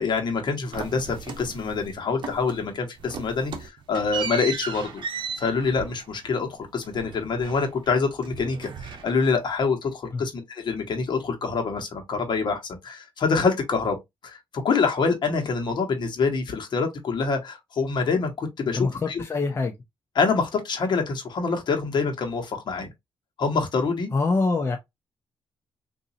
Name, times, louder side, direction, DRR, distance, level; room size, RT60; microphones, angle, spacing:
voice 1, 0.0-5.1 5.4-14.0 14.2-14.4 14.6-19.2 20.1-22.9 23.4-24.1, left 4 dB, 55° left, 1.1 m, -26 dB
sound 1, 0.7-1.9 2.2-2.7 3.0-7.9 8.2-9.5, right 6 dB, 60° right, 0.9 m, -36 dB
voice 2, 18.7-19.7 24.1-24.8, left 3 dB, 25° left, 0.5 m, -24 dB
3.9 x 2.6 x 2.7 m
cardioid pair, 125°, 9 cm